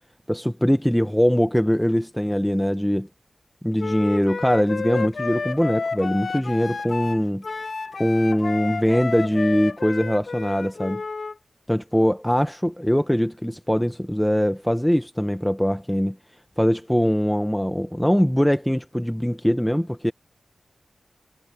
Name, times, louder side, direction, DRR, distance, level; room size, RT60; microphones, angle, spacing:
voice 1, 0.3-3.1 3.6-7.4 8.0-11.0 11.7-16.2 16.6-20.1, equal, 5° left, 0.8 m, -22 dB
Wind instrument woodwind instrument, 3.8-11.3, left 4 dB, 65° left, 1.2 m, -30 dB
cardioid pair, 50°, 0 cm